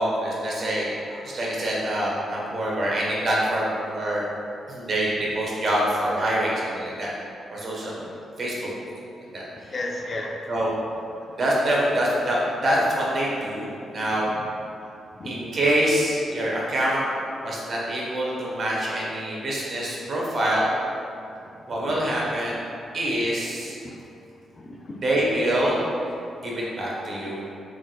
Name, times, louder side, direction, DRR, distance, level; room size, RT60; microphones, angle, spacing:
voice 1, 0.0-4.3 4.7-7.1 7.5-8.1 8.4-8.7 9.3-9.4 10.5-10.7 11.3-14.3 15.2-17.0 17.4-20.7 21.7-22.6 22.9-23.8 25.0-25.8 26.4-27.4, right 1 dB, 55° right, -5 dB, 1.1 m, -25 dB
voice 2, 9.6-10.4 14.1-14.5 14.8-14.9 15.2-15.3 23.8-23.9 24.5-25.0, left 2 dB, 45° left, 0 dB, 0.5 m, -34 dB
4.8 x 3.7 x 2.3 m, 2.6 s
hypercardioid pair, 45°, 0 cm